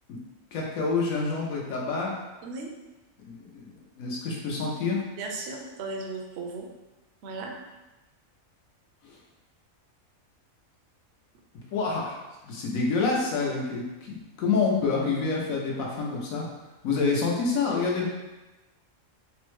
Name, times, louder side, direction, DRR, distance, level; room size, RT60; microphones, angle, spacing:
voice 1, 0.5-2.1 3.2-3.7 4.0-5.0 9.0-9.2 11.7-12.2 12.4-16.5 16.8-18.1, left 4 dB, 75° left, -2 dB, 1.1 m, -27 dB
voice 2, 5.2-6.7 7.2-7.6, right 3 dB, 65° right, 2 dB, 0.7 m, -36 dB
3.4 x 2.1 x 3.0 m, 1.1 s
omnidirectional pair, 1.5 m